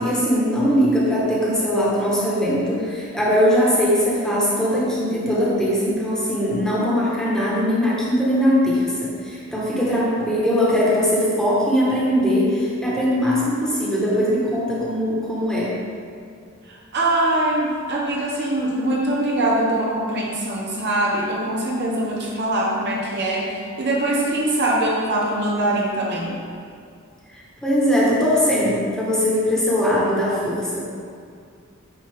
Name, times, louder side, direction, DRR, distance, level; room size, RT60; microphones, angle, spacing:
voice 1, 0.0-15.8 27.6-30.9, equal, 5° left, -7 dB, 1.4 m, -20 dB
voice 2, 16.7-23.5 23.8-26.4, right 1 dB, 55° right, -3 dB, 1.0 m, -22 dB
9.2 x 4.1 x 3.6 m, 2.3 s
head